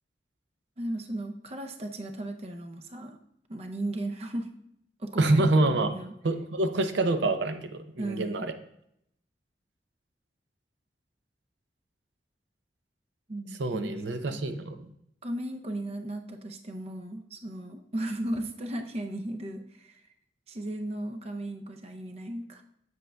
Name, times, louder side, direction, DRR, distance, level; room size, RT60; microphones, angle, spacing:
voice 1, 0.8-3.2 3.5-4.5 5.0-6.1 8.0-8.5 13.3-14.3 15.2-19.9 20.5-22.6, right 1 dB, 35° right, 5 dB, 0.5 m, -36 dB
voice 2, 5.2-5.9 6.2-8.5 13.6-14.9, right 2 dB, 90° right, 8 dB, 0.6 m, -26 dB
7.9 x 7.5 x 2.2 m, 0.74 s
head